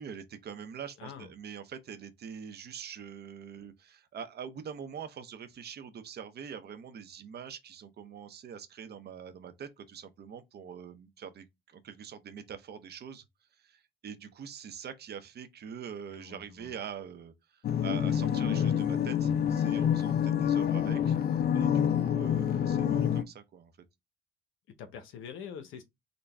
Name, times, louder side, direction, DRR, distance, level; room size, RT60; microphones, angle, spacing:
voice 1, 0.0-13.2 13.6-21.2 21.5-23.7, right 7 dB, 55° right, 0.7 m, -44 dB
voice 2, 1.0-1.3 16.1-16.7 24.7-25.8, left 7 dB, 90° left, 0.8 m, -45 dB
sound 1, 17.6-23.2, left 9 dB, 50° left, 0.5 m, -27 dB
3.9 x 2.2 x 3.3 m
cardioid pair, 90°, 20 cm